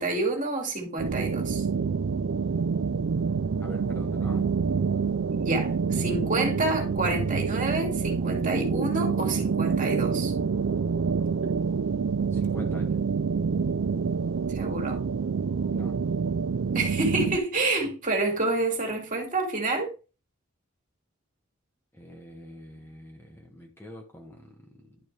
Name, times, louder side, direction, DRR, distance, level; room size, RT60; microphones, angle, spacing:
voice 1, 0.0-1.7 5.3-10.3 14.5-15.0 16.7-19.9, right 2 dB, 40° right, 2.4 m, -28 dB
sound 1, 1.0-17.4, right 5 dB, 70° right, 0.4 m, -27 dB
voice 2, 3.6-4.5 12.3-13.0 15.7-16.0 21.9-25.0, left 1 dB, 10° left, 1.3 m, -45 dB
11.0 x 5.0 x 3.3 m
head